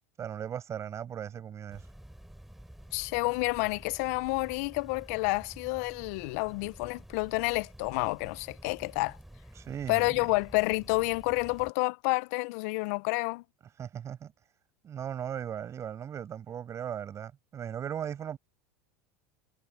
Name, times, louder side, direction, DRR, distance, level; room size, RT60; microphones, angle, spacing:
voice 1, 0.2-1.9 9.6-10.1 13.8-14.3 14.8-18.4, right 9 dB, 35° right, 5.9 m, -37 dB
sound 1, 1.7-11.7, right 1 dB, 5° right, 3.4 m, -50 dB
voice 2, 2.9-9.2 9.9-13.4, left 26 dB, 65° left, 0.6 m, -29 dB
hypercardioid pair, 105°, 9 cm